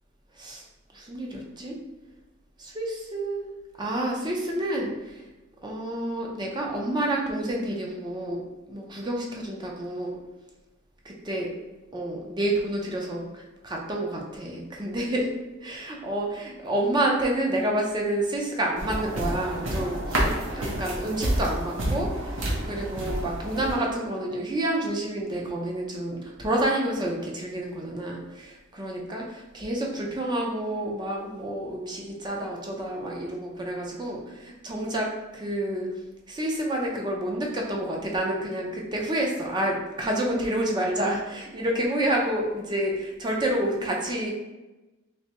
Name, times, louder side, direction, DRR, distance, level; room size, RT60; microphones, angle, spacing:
voice 1, 0.9-1.8 2.6-3.4 3.8-5.2 5.6-8.4 8.7-10.2 11.0-11.5 11.9-15.3 15.6-20.3 20.5-35.9 36.3-44.3, right 1 dB, 20° right, -1 dB, 0.5 m, -29 dB
sound 1, 18.8-23.7, right 1 dB, 65° right, 0.9 m, -29 dB
3.3 x 3.3 x 2.9 m, 1.1 s
head